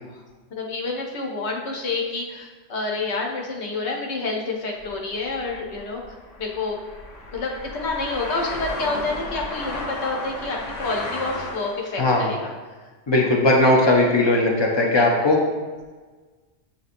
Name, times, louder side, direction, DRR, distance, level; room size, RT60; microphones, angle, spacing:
voice 1, 0.5-6.0 6.4-6.8 7.3-12.4 14.9-15.1, left 3 dB, 70° left, 0 dB, 1.0 m, -28 dB
sound 1, 4.8-11.9, left 2 dB, 90° left, 1.2 m, -34 dB
voice 2, 12.0-12.3 13.1-15.4, left 2 dB, 45° left, -1 dB, 0.3 m, -18 dB
7.8 x 2.7 x 2.5 m, 1.4 s
omnidirectional pair, 1.2 m